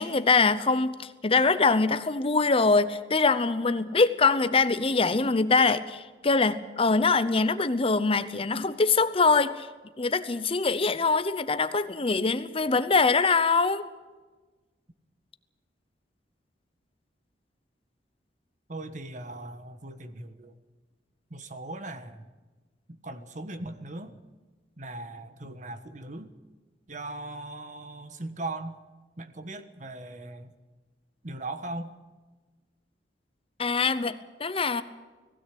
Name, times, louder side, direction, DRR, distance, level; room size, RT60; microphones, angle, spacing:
voice 1, 0.0-9.7 10.0-13.8 33.6-34.8, left 4 dB, 30° left, 13 dB, 0.8 m, -23 dB
voice 2, 18.7-20.5 21.3-22.3 22.9-24.1 24.8-26.3 26.9-28.8 29.2-30.5 31.2-31.9, right 2 dB, 45° right, 9 dB, 1.4 m, -39 dB
19.0 x 16.5 x 8.6 m, 1.3 s
head